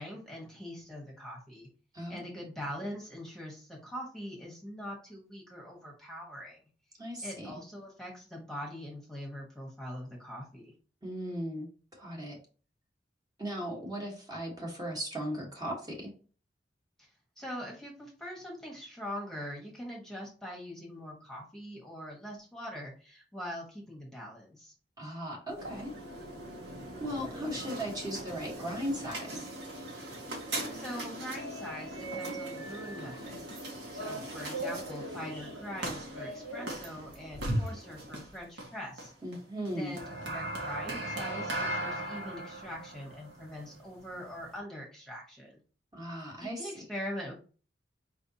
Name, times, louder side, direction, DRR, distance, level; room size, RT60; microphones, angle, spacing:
voice 1, 0.0-1.7 2.1-6.6 7.2-10.7 17.0-24.7 30.7-33.5 33.9-39.1 39.8-45.6 46.4-47.3, equal, 5° left, -2 dB, 1.2 m, -43 dB
voice 2, 7.0-7.6 11.0-12.4 13.4-16.1 25.0-25.9 27.0-29.5 39.2-40.0 45.9-46.7, equal, 20° right, -2 dB, 1.3 m, -37 dB
sound 1, 25.5-44.6, right 1 dB, 70° right, 1.4 m, -38 dB
4.8 x 3.4 x 2.8 m, 0.38 s
head